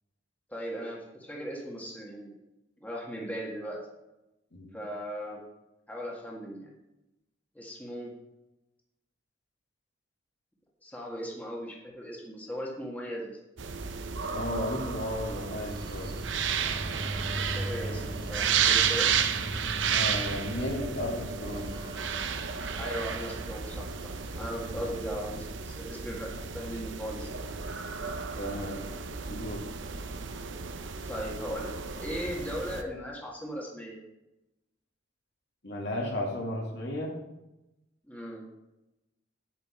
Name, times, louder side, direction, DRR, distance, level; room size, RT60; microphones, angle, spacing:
voice 1, 0.5-2.3 2.8-3.8 4.7-5.4 5.9-6.7 7.5-8.1 10.8-13.4 17.3-19.1 22.8-27.5 31.0-31.7 32.0-34.0 38.1-38.4, equal, 10° left, -2 dB, 1.6 m, -38 dB
sound 1, 13.6-32.8, right 7 dB, 75° right, 0.8 m, -32 dB
voice 2, 14.3-16.1 19.9-21.8 24.7-24.9 28.4-28.9 29.3-29.6 35.6-37.1, left 1 dB, 60° left, 0 dB, 2.2 m, -34 dB
sound 2, 15.4-25.1, right 1 dB, 25° right, 1.1 m, -40 dB
9.4 x 8.6 x 4.4 m, 0.95 s
head